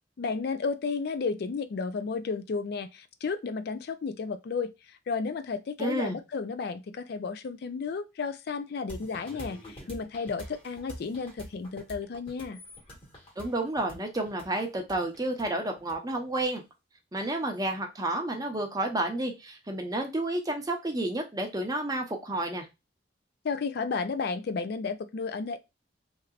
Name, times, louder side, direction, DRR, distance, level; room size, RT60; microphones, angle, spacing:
voice 1, 0.2-4.7 5.1-12.6 23.4-25.6, left 4 dB, 60° left, 0.4 m, -33 dB
voice 2, 5.8-6.2 13.4-16.6 17.1-22.7, right 1 dB, 20° right, 0.7 m, -30 dB
sound 1, 8.9-16.4, equal, 30° left, 1.6 m, -46 dB
3.2 x 2.9 x 2.4 m
head